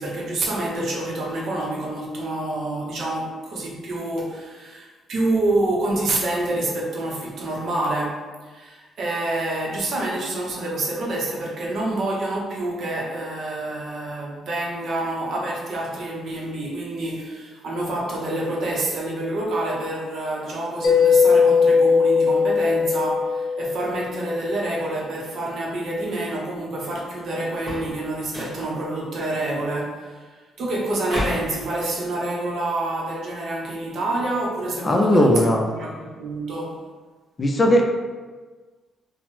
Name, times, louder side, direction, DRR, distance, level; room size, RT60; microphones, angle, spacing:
voice 1, 0.0-30.3 30.6-36.8, right 2 dB, 65° right, -2 dB, 0.7 m, -27 dB
Mallet percussion, 20.8-24.3, left 5 dB, 65° left, 0.7 m, -19 dB
sound 1, 27.5-28.0 28.3-28.7 31.1-31.5, left 1 dB, ahead, 1.3 m, -30 dB
voice 2, 34.8-35.7 37.4-37.8, left 1 dB, 30° left, 1 dB, 0.4 m, -17 dB
3.0 x 2.0 x 3.1 m, 1.3 s
cardioid pair, 90°, 0 cm